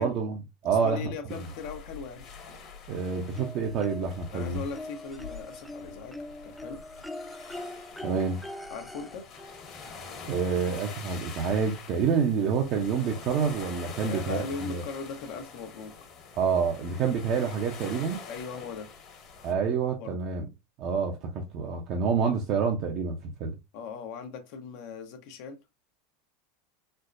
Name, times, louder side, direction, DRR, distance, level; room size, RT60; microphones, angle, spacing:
voice 1, 0.0-1.0 2.9-4.6 8.0-8.4 10.3-14.8 16.4-18.2 19.4-20.5 20.8-23.6, right 6 dB, 50° right, 0.7 m, -28 dB
voice 2, 0.6-2.3 4.3-6.2 6.4-6.8 8.7-9.3 14.1-16.0 18.3-18.9 19.4-20.2 23.7-25.6, left 5 dB, 65° left, 0.9 m, -39 dB
sound 1, 1.3-19.5, left 5 dB, 45° left, 1.2 m, -45 dB
sound 2, 3.4-4.3 4.7-10.4 11.6-11.7 12.1-12.2, left 1 dB, 5° left, 0.3 m, -43 dB
4.4 x 2.1 x 2.5 m
hypercardioid pair, 105°, 0 cm